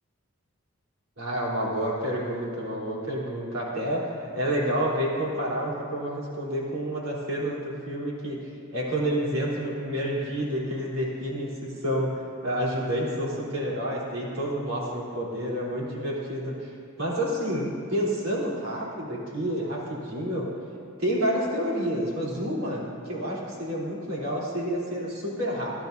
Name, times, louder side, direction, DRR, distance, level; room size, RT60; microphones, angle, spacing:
voice 1, 1.2-8.4 8.7-16.5 17.0-20.5 21.0-25.7, equal, 85° right, -5 dB, 3.7 m, -29 dB
29.5 x 10.5 x 2.7 m, 2.6 s
head